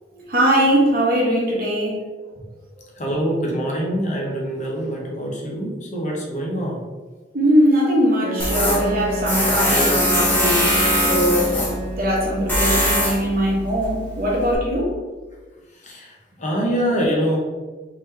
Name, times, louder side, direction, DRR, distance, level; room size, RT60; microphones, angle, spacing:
voice 1, 0.3-2.0 7.3-11.6 12.0-14.9, equal, 55° right, -4 dB, 1.2 m, -20 dB
voice 2, 3.0-6.8 15.8-17.4, equal, 45° left, -2 dB, 0.9 m, -24 dB
Wind instrument woodwind instrument, 8.2-12.3, right 1 dB, 35° right, 0.7 m, -30 dB
Tools, 8.4-14.5, equal, 10° left, 1.1 m, -22 dB
3.9 x 3.1 x 3.2 m, 1.3 s
head